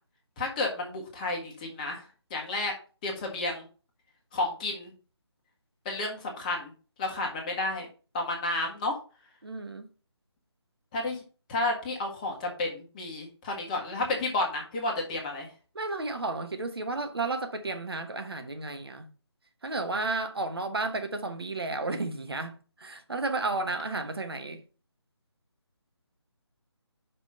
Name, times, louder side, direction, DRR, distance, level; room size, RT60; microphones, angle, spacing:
voice 1, 0.4-2.7 3.0-3.6 4.3-4.9 5.8-6.7 7.0-7.9 8.1-8.9 10.9-11.2 11.5-15.5, left 2 dB, 15° left, 1.3 m, -31 dB
voice 2, 9.4-9.9 15.7-19.1 19.6-24.6, right 3 dB, 60° right, 1.2 m, -32 dB
5.5 x 5.1 x 5.2 m
figure-of-eight pair, 155°, 15 cm